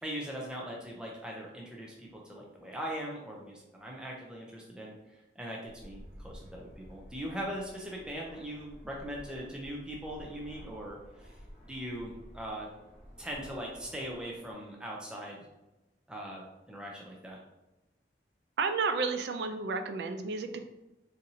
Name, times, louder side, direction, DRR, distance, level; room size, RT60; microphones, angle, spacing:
voice 1, 0.0-4.9 5.4-11.4 11.6-12.7 13.2-15.5 16.1-16.4 16.7-17.4, equal, 5° right, -2 dB, 0.4 m, -40 dB
Fixed-wing aircraft airplane, 5.7-14.5, equal, 25° right, 0.9 m, -52 dB
voice 2, 18.6-20.6, right 4 dB, 75° right, 7 dB, 0.3 m, -31 dB
4.1 x 2.6 x 2.7 m, 1.0 s
head